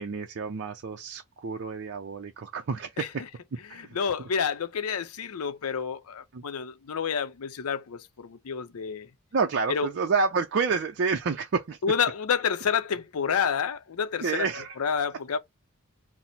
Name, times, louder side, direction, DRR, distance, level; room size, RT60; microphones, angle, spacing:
voice 1, 0.0-3.2 3.7-4.0 6.3-6.4 9.3-11.8 14.2-14.8, right 5 dB, 50° right, 0.5 m, -29 dB
voice 2, 3.7-9.1 9.7-9.9 11.8-14.4 14.8-15.4, left 6 dB, 75° left, 0.5 m, -29 dB
4.0 x 2.0 x 4.2 m
head